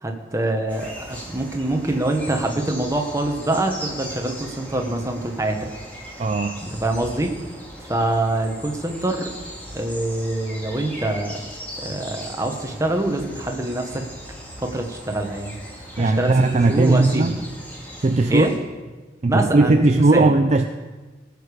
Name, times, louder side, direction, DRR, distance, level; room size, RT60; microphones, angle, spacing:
voice 1, 0.0-5.6 6.6-7.3 7.8-9.3 9.7-11.4 11.8-14.0 14.6-15.5 15.9-17.4 18.3-18.5 19.3-20.3, right 1 dB, 15° right, 3 dB, 1.2 m, -25 dB
sound 1, 0.7-18.6, equal, 10° left, 2.3 m, -38 dB
voice 2, 6.2-6.6 16.0-17.4 18.0-18.5 19.2-20.7, right 2 dB, 35° right, 6 dB, 0.5 m, -17 dB
19.0 x 6.7 x 5.1 m, 1.3 s
head